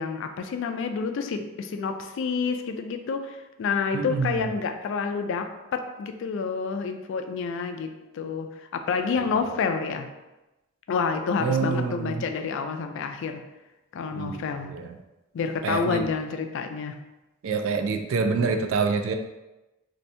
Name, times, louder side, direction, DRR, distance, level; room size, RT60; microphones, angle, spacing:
voice 1, 0.0-10.1 10.9-13.4 13.9-14.7 15.3-16.9, left 5 dB, 60° left, 7 dB, 0.3 m, -29 dB
voice 2, 3.9-4.5 11.4-12.2 14.1-14.9 15.6-16.0 17.4-19.1, right 4 dB, 70° right, 7 dB, 0.3 m, -26 dB
2.7 x 2.6 x 3.2 m, 1.0 s
head